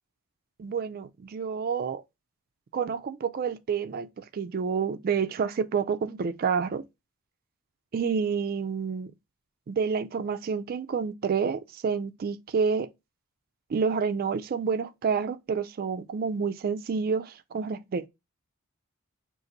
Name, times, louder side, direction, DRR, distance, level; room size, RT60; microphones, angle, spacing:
voice 1, 0.6-2.0 2.7-6.8 7.9-9.1 9.7-12.9 13.7-18.1, right 6 dB, 40° right, 0.3 m, -29 dB
3.9 x 2.5 x 3.9 m
head